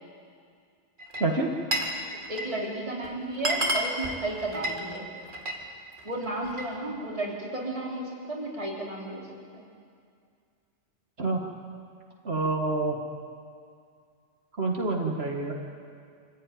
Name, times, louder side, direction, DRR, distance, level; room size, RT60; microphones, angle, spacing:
Glass, 1.0-2.0 2.2-2.7 3.0-3.1 3.3-5.6 6.0-6.7, right 1 dB, 45° right, 2.4 m, -30 dB
voice 1, 2.3-5.1 6.0-9.3 9.5-9.6, right 2 dB, 30° right, -3 dB, 3.3 m, -33 dB
voice 2, 12.3-13.0 14.6-15.5, right 3 dB, 60° right, 0 dB, 1.9 m, -27 dB
25.5 x 15.5 x 9.2 m, 2.2 s
omnidirectional pair, 1.2 m